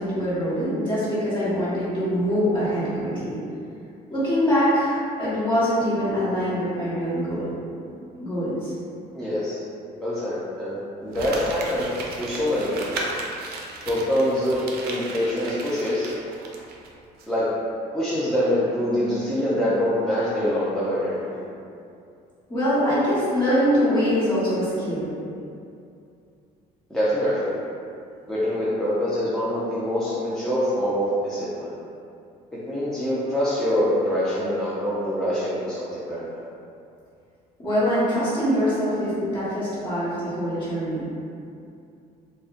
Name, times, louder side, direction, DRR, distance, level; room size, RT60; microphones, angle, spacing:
voice 1, 0.0-3.4 4.1-7.5 8.2-8.7 22.5-25.1 37.6-41.0, equal, 30° left, -12 dB, 1.2 m, -23 dB
voice 2, 9.1-9.6 10.0-13.1 13.9-14.6 14.8-16.1 17.3-17.4 17.9-21.4 26.9-27.6 28.3-31.7 32.7-36.4, equal, 5° left, -11 dB, 0.4 m, -25 dB
Crumpling crinkling, 11.1-16.9 17.2-17.3, right 2 dB, 70° right, 0.4 m, -35 dB
2.5 x 2.1 x 2.4 m, 2.5 s
cardioid pair, 110°, 17 cm